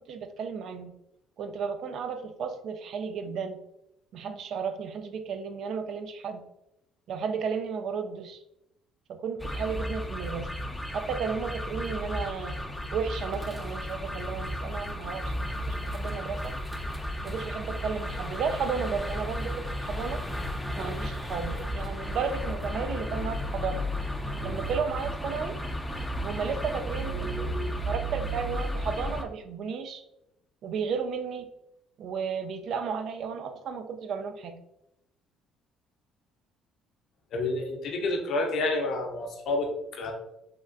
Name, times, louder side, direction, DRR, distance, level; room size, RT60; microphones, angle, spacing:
voice 1, 0.1-0.9 1.4-3.6 4.1-6.4 7.1-8.4 9.1-10.5 10.9-12.6 12.9-16.5 17.2-20.2 20.7-23.9 24.4-25.6 26.2-30.0 30.6-31.5 32.0-34.6, right 6 dB, 65° right, 8 dB, 0.3 m, -33 dB
sound 1, 9.4-29.2, equal, 10° left, 0.4 m, -33 dB
voice 2, 27.1-27.7 37.3-40.1, left 2 dB, 65° left, 2 dB, 0.6 m, -30 dB
3.4 x 2.2 x 2.5 m, 0.84 s
supercardioid pair, 70°, 0 cm